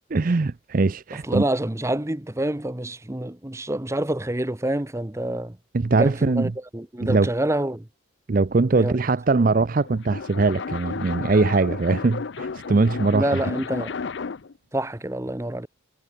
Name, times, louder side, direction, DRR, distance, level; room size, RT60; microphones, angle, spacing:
voice 1, 0.1-1.4 5.7-6.5 7.0-7.3 8.3-13.4, right 3 dB, 40° right, 0.5 m, -21 dB
voice 2, 1.1-5.6 5.9-7.9 8.7-9.0 13.1-13.9 14.7-15.7, right 1 dB, 15° right, 0.8 m, -27 dB
sound 1, 9.7-14.6, left 5 dB, 55° left, 0.5 m, -33 dB
head